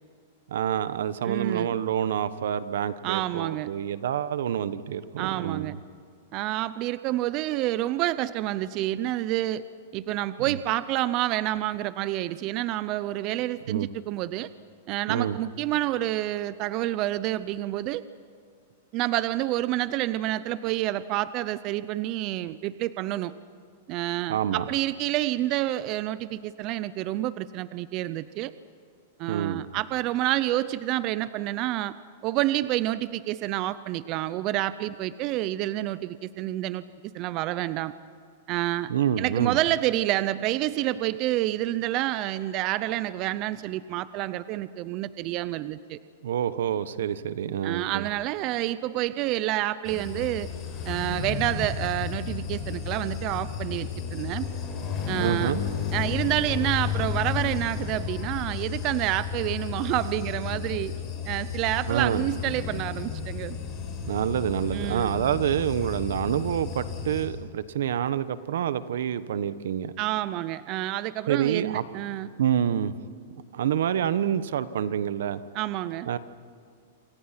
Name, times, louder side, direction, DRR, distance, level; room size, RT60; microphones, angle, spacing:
voice 1, 0.5-5.7 10.5-10.6 13.7-13.9 15.1-15.4 24.3-24.7 29.3-29.7 38.9-39.6 46.2-48.1 55.2-55.6 61.9-62.3 64.1-69.9 71.3-71.8 72.4-72.9 73.5-75.4 76.1-76.2, right 9 dB, 75° right, 14 dB, 1.1 m, -27 dB
voice 2, 1.2-1.8 3.0-3.7 5.2-5.8 6.3-9.6 9.9-14.5 14.9-18.0 18.9-23.3 23.9-28.5 29.2-31.9 32.2-36.8 37.1-37.9 38.5-38.9 39.2-46.0 47.6-50.5 50.9-54.5 55.1-55.5 55.9-60.9 61.3-63.6 64.7-65.1 70.0-72.3 75.5-76.1, right 15 dB, 35° right, 15 dB, 0.6 m, -28 dB
sound 1, 49.8-67.3, left 7 dB, 20° left, 6.8 m, -33 dB
27.5 x 25.5 x 5.9 m, 2.3 s
supercardioid pair, 155°, 0 cm